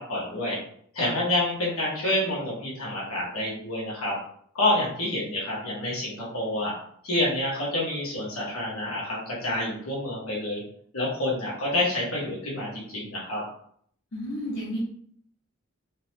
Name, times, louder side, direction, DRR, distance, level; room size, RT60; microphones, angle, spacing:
voice 1, 0.1-0.6 0.9-4.2 4.5-6.7 7.0-10.6 10.9-13.4, left 1 dB, 80° left, -5 dB, 1.9 m, -28 dB
voice 2, 14.1-14.8, equal, 55° left, -7 dB, 1.3 m, -32 dB
4.2 x 3.1 x 3.7 m, 0.62 s
head